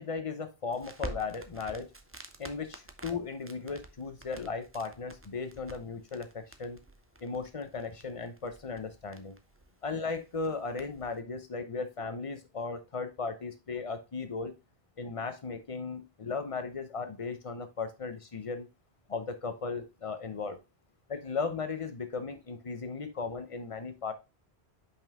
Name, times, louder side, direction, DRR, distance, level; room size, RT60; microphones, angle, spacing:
voice 1, 0.0-1.9 2.4-6.8 7.2-9.4 9.8-14.6 15.0-18.7 19.1-20.6 21.1-24.1, left 4 dB, 35° left, 10 dB, 0.8 m, -36 dB
Crackle, 0.7-11.2, right 2 dB, 15° right, 0.5 m, -49 dB
5.5 x 5.4 x 3.6 m, 0.25 s
omnidirectional pair, 1.1 m